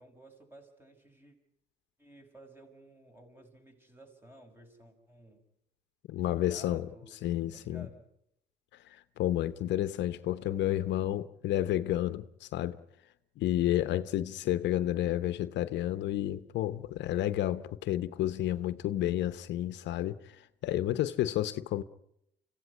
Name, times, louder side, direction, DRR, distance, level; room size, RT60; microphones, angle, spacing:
voice 1, 0.0-1.4 2.0-5.4 6.2-7.2 7.5-8.1 10.3-11.1, right 1 dB, 10° right, 6.0 m, -55 dB
voice 2, 6.1-6.9 7.2-7.9 8.8-12.8 13.4-21.8, left 13 dB, 75° left, 0.9 m, -31 dB
26.0 x 16.0 x 9.7 m
supercardioid pair, 75°, 19 cm